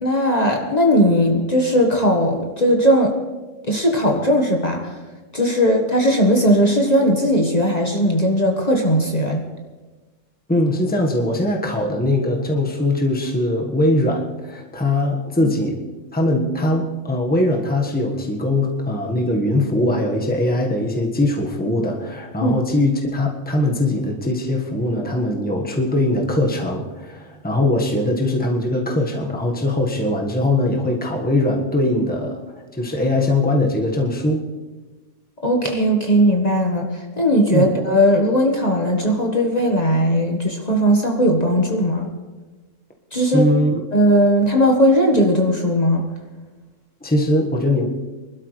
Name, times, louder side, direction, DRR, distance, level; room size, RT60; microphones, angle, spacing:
voice 1, 0.0-3.1 3.7-5.0 5.3-9.4 22.4-22.5 35.4-42.1 43.1-43.4 43.9-46.0, equal, 35° left, 1 dB, 1.6 m, -18 dB
voice 2, 10.5-15.8 16.1-34.4 37.5-37.7 43.3-43.7 47.0-47.9, left 1 dB, 5° left, 0 dB, 1.4 m, -21 dB
24.5 x 12.5 x 3.3 m, 1.2 s
omnidirectional pair, 1.3 m